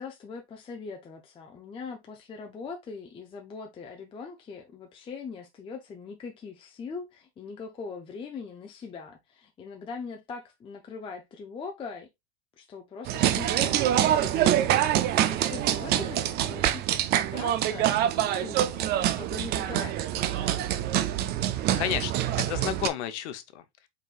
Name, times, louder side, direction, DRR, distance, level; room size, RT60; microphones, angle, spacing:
voice 1, 0.0-12.1 12.6-20.9, left 5 dB, 15° left, 0.6 m, -41 dB
sound 1, 13.1-22.9, right 11 dB, 30° right, 0.4 m, -25 dB
voice 2, 21.5-23.6, left 11 dB, 75° left, 0.9 m, -32 dB
4.9 x 4.1 x 2.4 m
supercardioid pair, 140°, 34 cm